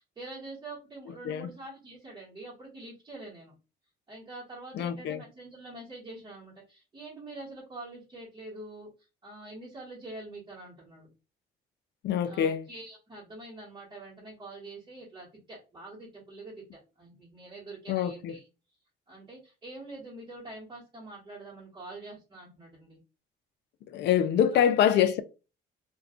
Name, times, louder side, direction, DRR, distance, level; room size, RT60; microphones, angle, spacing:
voice 1, 0.0-3.5 4.1-8.9 9.2-11.1 12.2-18.4 19.1-23.0 24.5-25.1, right 2 dB, 20° right, 1.1 m, -45 dB
voice 2, 4.7-5.2 12.0-12.7 17.9-18.4 23.9-25.2, left 9 dB, 60° left, 0.4 m, -25 dB
2.3 x 2.3 x 3.6 m
cardioid pair, 155°, 21 cm